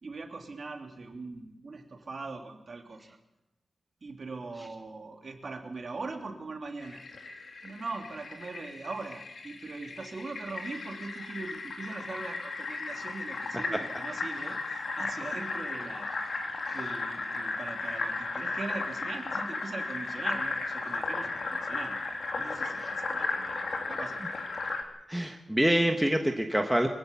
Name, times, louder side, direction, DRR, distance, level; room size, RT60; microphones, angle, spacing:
voice 1, 0.0-3.2 4.0-7.1 7.6-16.1 16.7-22.0 22.4-24.3, right 3 dB, 45° right, 3 dB, 3.0 m, -41 dB
Fill (with liquid), 6.8-24.8, left 3 dB, 60° left, 2.7 m, -35 dB
voice 2, 25.1-26.9, right 1 dB, 5° right, 4 dB, 1.3 m, -26 dB
24.5 x 16.0 x 7.0 m, 0.93 s
wide cardioid pair, 170°, 0 cm